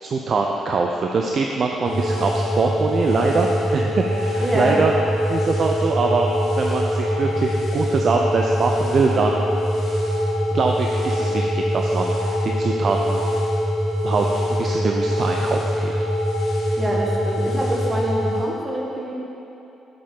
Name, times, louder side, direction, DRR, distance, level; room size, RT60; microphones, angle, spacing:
voice 1, 0.0-4.9 5.3-6.3 6.6-9.4 10.5-13.2 14.0-16.1, right 4 dB, 45° right, 1 dB, 0.4 m, -23 dB
sound 1, 1.8-18.4, equal, 55° left, 1.9 m, -23 dB
voice 2, 4.4-4.8 16.8-19.1, right 1 dB, 20° right, -3 dB, 1.6 m, -25 dB
6.9 x 5.3 x 5.6 m, 2.9 s
figure-of-eight pair, 40°, 0 cm